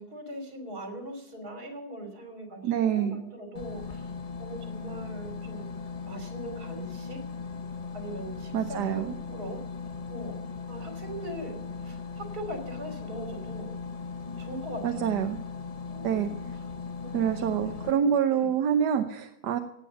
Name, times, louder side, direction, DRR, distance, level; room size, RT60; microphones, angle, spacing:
voice 1, 0.0-5.7 6.1-7.2 7.9-9.6 10.1-10.4 10.7-13.7 14.4-15.3 15.8-16.4 17.0-18.5, right 1 dB, 65° right, 6 dB, 3.5 m, -41 dB
voice 2, 2.6-3.2 8.5-9.1 14.8-15.4 16.0-16.3 17.1-19.6, right 8 dB, 90° right, 7 dB, 1.5 m, -26 dB
sound 1, 3.5-17.9, left 5 dB, 40° left, 0.5 m, -38 dB
17.0 x 9.0 x 7.1 m, 0.83 s
omnidirectional pair, 1.7 m